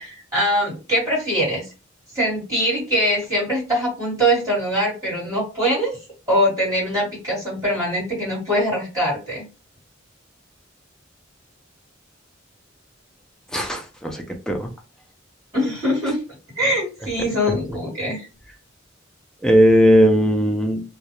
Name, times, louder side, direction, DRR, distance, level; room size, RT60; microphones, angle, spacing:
voice 1, 0.0-1.7 2.1-5.9 6.3-9.4 15.5-16.2 16.6-18.3, equal, 20° right, -8 dB, 1.4 m, -22 dB
voice 2, 13.5-14.7 19.4-20.8, equal, 5° left, 3 dB, 0.3 m, -17 dB
2.3 x 2.1 x 2.9 m, 0.31 s
head